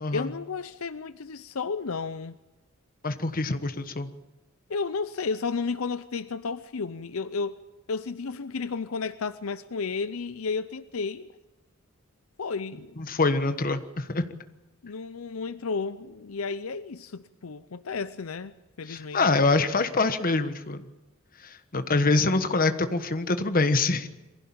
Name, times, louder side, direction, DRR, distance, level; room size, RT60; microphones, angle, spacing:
voice 1, 0.1-2.4 4.7-7.6 7.9-11.3 12.4-13.0 14.8-19.3, left 4 dB, 75° left, 0.6 m, -32 dB
voice 2, 3.0-4.1 13.0-14.2 18.9-20.9 21.4-24.1, left 3 dB, 40° left, 1.3 m, -25 dB
23.0 x 16.0 x 8.7 m
head